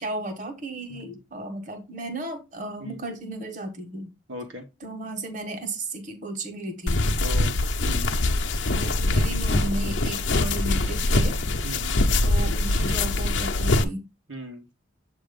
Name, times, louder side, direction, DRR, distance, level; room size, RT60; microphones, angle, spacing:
voice 1, 0.0-4.1 4.8-7.0 8.7-11.4 12.2-14.0, right 2 dB, 40° right, 1.5 m, -34 dB
voice 2, 4.3-4.6 7.2-8.1 11.6-12.0 14.3-14.7, equal, 85° right, 1.3 m, -38 dB
sound 1, 6.9-13.8, left 2 dB, 70° left, 0.8 m, -23 dB
7.6 x 3.0 x 5.2 m
head